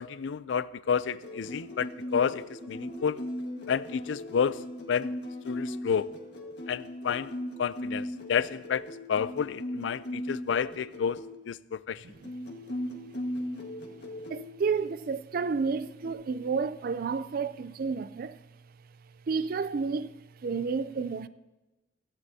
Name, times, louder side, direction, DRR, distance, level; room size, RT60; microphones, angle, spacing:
voice 1, 0.0-3.2 3.7-5.1 5.4-6.1 6.7-7.3 7.6-11.2 11.5-12.0, left 7 dB, 80° left, 0.4 m, -30 dB
sound 1, 1.0-11.3 12.1-14.4 15.6-16.1, left 1 dB, 65° left, 1.7 m, -38 dB
voice 2, 14.3-18.4 19.3-20.1 20.4-21.3, right 5 dB, 50° right, 0.4 m, -31 dB
16.0 x 14.5 x 2.8 m
head